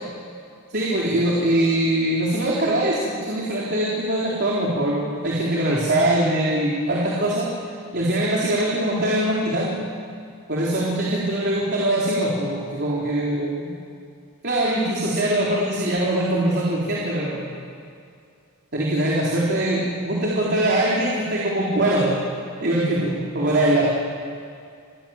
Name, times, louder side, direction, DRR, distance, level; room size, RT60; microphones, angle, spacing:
voice 1, 0.7-7.5 7.9-9.8 10.5-13.7 14.4-17.5 18.7-22.2 22.6-23.9, right 1 dB, 50° right, -4 dB, 3.9 m, -22 dB
28.5 x 20.0 x 7.3 m, 2.3 s
head